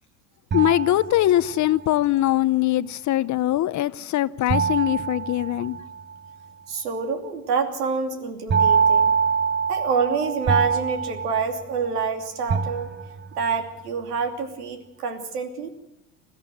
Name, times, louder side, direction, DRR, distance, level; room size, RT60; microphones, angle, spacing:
voice 1, 0.5-5.8, left 14 dB, 40° left, 0.8 m, -22 dB
sound 1, 0.5-1.7 4.5-6.1 8.5-12.1 12.5-13.4, right 6 dB, 25° right, 0.9 m, -24 dB
voice 2, 6.7-9.1 9.7-12.9 13.4-15.7, right 5 dB, 85° right, 2.9 m, -27 dB
21.0 x 14.0 x 9.1 m
hypercardioid pair, 90°, 45 cm